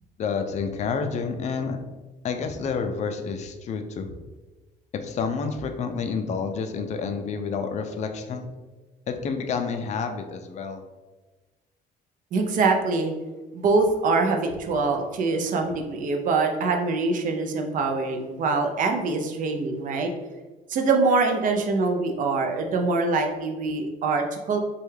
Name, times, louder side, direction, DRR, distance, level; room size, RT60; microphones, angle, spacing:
voice 1, 0.2-1.8 2.2-4.1 5.0-8.5 9.1-10.8, left 5 dB, 45° left, 6 dB, 0.4 m, -29 dB
voice 2, 12.3-13.1 13.5-20.1 20.7-24.6, right 3 dB, 50° right, 4 dB, 0.5 m, -24 dB
3.2 x 2.3 x 3.2 m, 1.2 s
cardioid pair, 110°, 17 cm